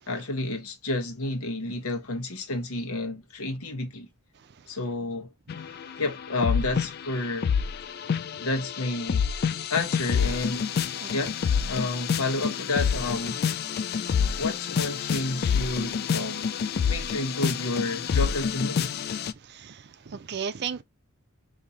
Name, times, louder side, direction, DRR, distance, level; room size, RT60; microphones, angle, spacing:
voice 1, 0.1-4.1 4.7-5.3 6.0-7.5 8.4-9.3 9.7-10.7 11.1-13.4 14.4-16.5 16.9-19.0, left 2 dB, 85° left, 1.1 m, -30 dB
sound 1, 5.5-7.2 7.4-19.3, left 7 dB, 45° left, 0.3 m, -28 dB
voice 2, 19.4-20.8, right 7 dB, 50° right, 0.5 m, -35 dB
5.0 x 2.8 x 2.7 m
head